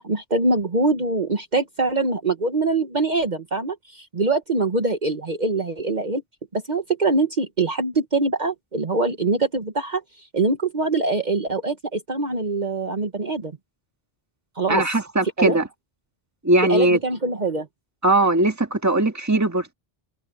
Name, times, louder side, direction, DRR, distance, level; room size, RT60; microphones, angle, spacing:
voice 1, 0.0-6.2 6.5-10.0 10.3-13.5 14.6-14.8 15.4-15.6 16.7-17.7, right 3 dB, 45° right, 1.4 m, -23 dB
voice 2, 14.7-15.7 16.4-17.0 18.0-19.7, right 2 dB, 15° right, 1.7 m, -19 dB
omnidirectional pair, 1.0 m